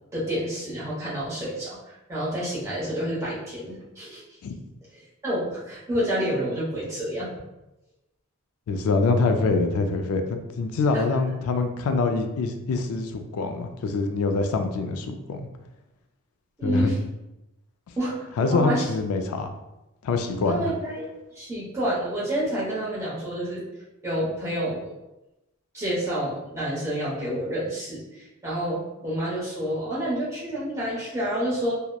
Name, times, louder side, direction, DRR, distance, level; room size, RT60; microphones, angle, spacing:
voice 1, 0.1-1.8 2.1-4.2 5.2-7.3 16.6-16.9 18.0-18.1 18.4-18.8 20.5-21.0 21.3-23.6 24.0-24.9 25.7-31.7, right 1 dB, 15° right, -8 dB, 0.8 m, -28 dB
voice 2, 8.7-15.5 16.6-16.9 18.4-19.5 20.0-20.7, left 3 dB, 75° left, 7 dB, 0.3 m, -25 dB
2.8 x 2.0 x 2.2 m, 0.95 s
head